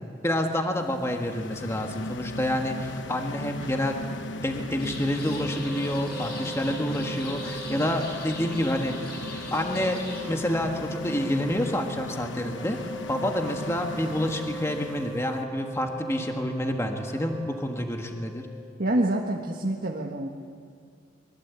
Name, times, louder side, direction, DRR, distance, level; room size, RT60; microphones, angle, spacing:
voice 1, 0.2-4.0 4.4-9.2 9.5-10.0 10.3-12.8 13.1-18.4, left 1 dB, 15° left, 3 dB, 1.6 m, -28 dB
sound 1, 0.8-15.3, left 2 dB, 80° left, 1.0 m, -37 dB
sound 2, 4.8-10.2, left 3 dB, 60° left, 6.0 m, -42 dB
Wind instrument woodwind instrument, 5.3-18.7, right 1 dB, 10° right, 1.6 m, -41 dB
voice 2, 18.8-20.3, right 1 dB, 55° right, 0 dB, 1.6 m, -27 dB
24.5 x 22.5 x 8.4 m, 2.2 s
head